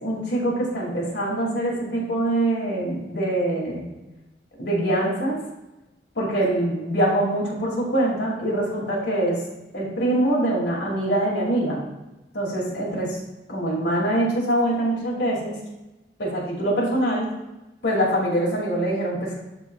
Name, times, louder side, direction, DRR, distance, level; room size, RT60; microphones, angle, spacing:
voice 1, 0.0-3.8 4.6-5.4 6.2-9.4 9.7-11.8 12.3-13.2 13.5-15.5 16.2-17.3 17.8-19.3, right 1 dB, 85° left, -4 dB, 2.5 m, -24 dB
12.0 x 4.5 x 2.3 m, 1.0 s
head